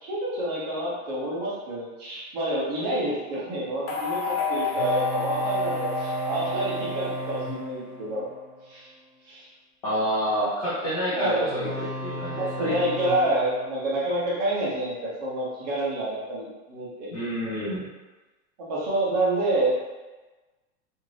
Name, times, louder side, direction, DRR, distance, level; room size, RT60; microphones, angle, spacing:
voice 1, 0.0-8.3 8.7-8.9 9.2-9.5 11.1-11.5 12.4-17.1 18.7-19.7, right 1 dB, 30° right, -6 dB, 0.5 m, -28 dB
sound 1, 3.9-8.1, left 2 dB, 90° left, 1.0 m, -29 dB
sound 2, 4.8-9.2 11.5-14.8, left 1 dB, 60° left, 1.3 m, -36 dB
voice 2, 9.8-11.7 12.0-12.8 17.1-17.9, equal, 30° left, -10 dB, 0.4 m, -28 dB
2.5 x 2.5 x 3.1 m, 1.2 s
supercardioid pair, 165°, 44 cm